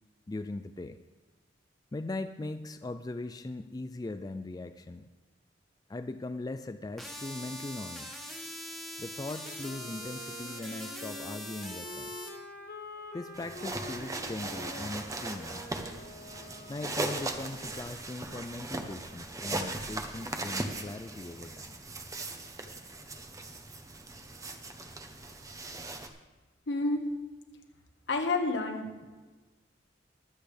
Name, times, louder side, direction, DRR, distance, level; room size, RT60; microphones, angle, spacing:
voice 1, 0.3-1.0 1.9-5.1 5.9-8.2 9.0-12.2 13.1-15.7 16.7-21.8, left 2 dB, 20° left, 9 dB, 0.4 m, -40 dB
sound 1, 7.0-12.3, equal, ahead, 1.7 m, -42 dB
Wind instrument woodwind instrument, 9.4-17.7, left 1 dB, 55° left, 1.2 m, -47 dB
sound 2, 13.3-26.1, right 2 dB, 20° right, 0.9 m, -38 dB
voice 2, 26.7-27.0 28.1-29.1, left 3 dB, 75° left, 4 dB, 1.5 m, -29 dB
22.5 x 8.3 x 3.4 m, 1.3 s
head